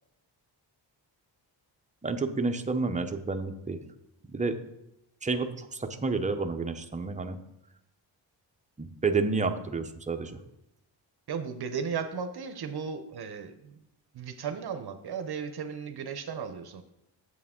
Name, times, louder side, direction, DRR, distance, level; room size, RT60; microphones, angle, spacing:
voice 1, 2.0-3.8 4.3-4.6 5.2-7.4 9.0-10.4, right 4 dB, 15° right, 6 dB, 0.6 m, -30 dB
voice 2, 11.3-13.7 14.1-16.8, right 6 dB, 60° right, 8 dB, 0.7 m, -35 dB
8.3 x 7.4 x 3.7 m, 0.86 s
wide cardioid pair, 130°, 44 cm